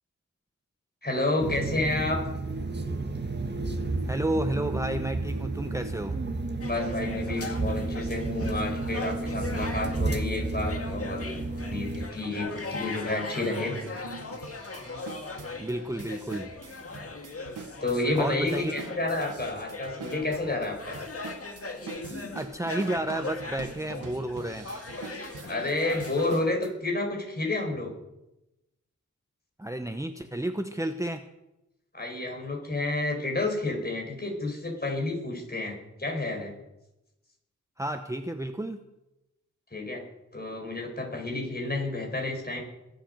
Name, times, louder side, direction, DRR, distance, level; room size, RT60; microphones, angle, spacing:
voice 1, 1.0-2.2 6.6-13.7 17.8-21.0 25.4-27.9 31.9-36.5 39.7-40.0 40.3-42.6, left 2 dB, 30° left, 1 dB, 4.9 m, -30 dB
Bus ride, 1.4-12.1, right 2 dB, 35° right, 1.6 m, -31 dB
voice 2, 4.1-6.2 15.6-16.5 18.2-18.7 22.3-24.7 29.6-31.3 37.8-38.8, right 1 dB, 10° right, 7 dB, 0.9 m, -31 dB
sound 1, 6.6-26.3, left 3 dB, 50° left, 1.9 m, -40 dB
sound 2, 11.9-12.0 12.6-12.7 13.2-26.7, right 5 dB, 85° right, 1.4 m, -45 dB
21.5 x 8.1 x 6.6 m, 0.94 s
wide cardioid pair, 65°, 31 cm